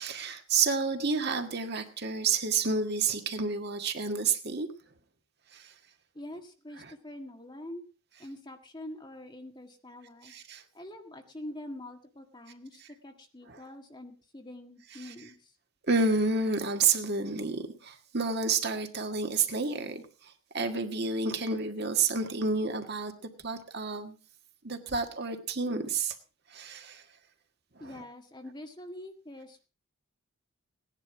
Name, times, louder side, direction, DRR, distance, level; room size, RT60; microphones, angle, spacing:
voice 1, 0.0-4.7 5.5-5.7 10.2-10.6 13.5-13.6 15.9-20.0 20.5-23.1 23.4-24.2 24.6-26.2 26.5-27.0, right 4 dB, 50° right, 6 dB, 1.7 m, -29 dB
voice 2, 6.1-7.9 8.2-10.4 10.7-15.5 27.8-29.7, left 1 dB, 20° left, 4 dB, 1.7 m, -45 dB
18.0 x 10.5 x 4.8 m, 0.36 s
head